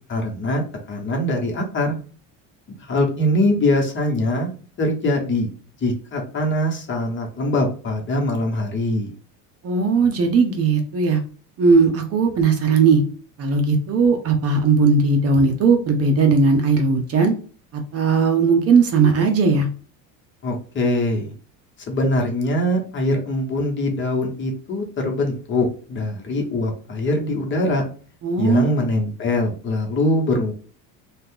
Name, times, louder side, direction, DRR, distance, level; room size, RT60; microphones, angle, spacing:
voice 1, 0.1-2.0 2.8-4.5 4.8-5.5 5.8-9.1 20.4-21.3 21.9-27.8 28.4-30.5, left 1 dB, 30° left, 1 dB, 1.0 m, -22 dB
voice 2, 9.6-11.2 11.6-13.0 13.4-17.3 17.9-19.7 28.2-28.7, right 4 dB, 40° right, 5 dB, 0.7 m, -17 dB
2.7 x 2.4 x 3.5 m, 0.39 s
cardioid pair, 125°, 37 cm